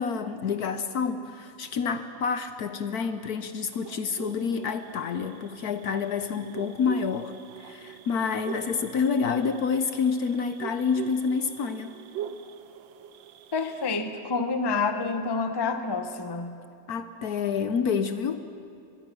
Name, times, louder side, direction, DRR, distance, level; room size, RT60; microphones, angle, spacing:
voice 1, 0.0-11.9 16.9-18.4, left 6 dB, 60° left, 10 dB, 1.2 m, -28 dB
sound 1, 3.4-13.9, right 10 dB, 85° right, 1.5 m, -43 dB
voice 2, 13.5-16.6, left 4 dB, 20° left, 8 dB, 0.7 m, -28 dB
23.0 x 22.5 x 6.2 m, 2.5 s
omnidirectional pair, 2.1 m